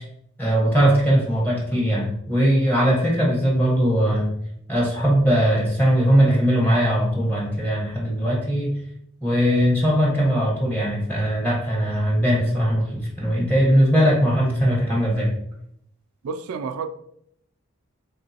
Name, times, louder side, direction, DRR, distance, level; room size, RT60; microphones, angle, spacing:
voice 1, 0.4-4.3 4.7-8.7 9.2-15.3, equal, 10° left, -5 dB, 1.1 m, -20 dB
voice 2, 16.2-16.9, right 5 dB, 85° right, 9 dB, 0.3 m, -29 dB
3.6 x 3.2 x 2.8 m, 0.72 s
head